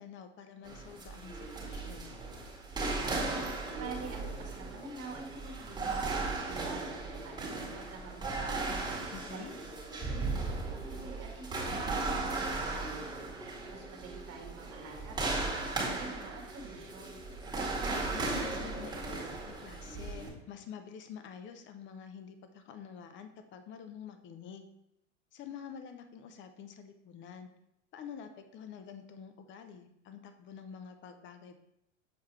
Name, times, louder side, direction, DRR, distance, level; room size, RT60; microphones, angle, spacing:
voice 1, 0.0-2.1 9.1-9.5 18.1-24.7 25.3-27.5 27.9-31.6, left 7 dB, 30° left, 8 dB, 0.7 m, -48 dB
sound 1, 0.6-20.3, right 3 dB, 10° right, 1.8 m, -36 dB
voice 2, 3.8-10.0 10.7-13.1 13.7-17.2, right 4 dB, 40° right, 2 dB, 1.6 m, -48 dB
7.2 x 4.6 x 3.1 m, 0.81 s
hypercardioid pair, 95°, 38 cm